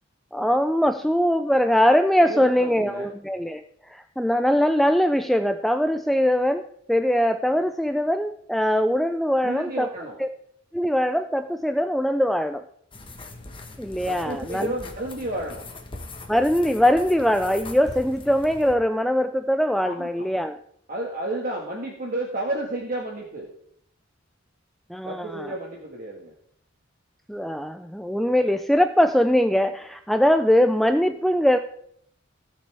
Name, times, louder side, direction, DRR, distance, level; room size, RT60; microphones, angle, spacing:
voice 1, 0.3-3.6 3.9-6.6 6.9-9.9 10.2-10.3 10.7-12.6 13.8-14.7 16.3-20.6 24.9-25.5 27.3-31.6, equal, ahead, 7 dB, 0.4 m, -21 dB
voice 2, 2.2-3.1 9.4-10.2 14.1-15.6 19.8-20.3 20.9-23.5 25.0-26.3, right 1 dB, 45° right, -1 dB, 1.7 m, -31 dB
sound 1, 12.9-18.7, left 2 dB, 25° left, 1.2 m, -41 dB
17.0 x 6.6 x 3.4 m, 0.67 s
head